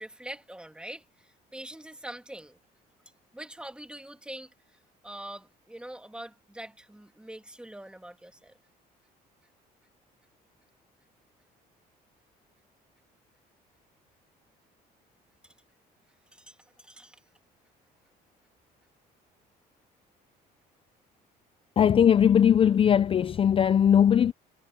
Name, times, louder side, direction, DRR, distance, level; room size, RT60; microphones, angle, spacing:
voice 1, 0.0-2.6 3.3-4.5 5.0-8.5 16.3-17.2, right 1 dB, 5° right, 2.6 m, -44 dB
voice 2, 21.8-24.3, left 8 dB, 30° left, 0.4 m, -20 dB
cardioid pair, 110°, 17 cm